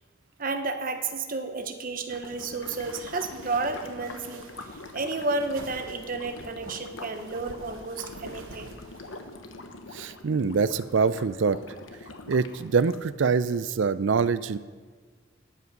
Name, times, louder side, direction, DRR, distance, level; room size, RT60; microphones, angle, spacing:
voice 1, 0.4-4.5 4.9-8.8, right 3 dB, 45° right, 7 dB, 1.0 m, -31 dB
sound 1, 2.1-13.0, left 3 dB, 70° left, 1.1 m, -44 dB
sound 2, 2.6-9.4, right 2 dB, 85° right, 1.1 m, -48 dB
voice 2, 9.9-11.6 12.3-14.6, right 5 dB, 65° right, 15 dB, 0.4 m, -24 dB
12.5 x 8.5 x 5.4 m, 1.5 s
head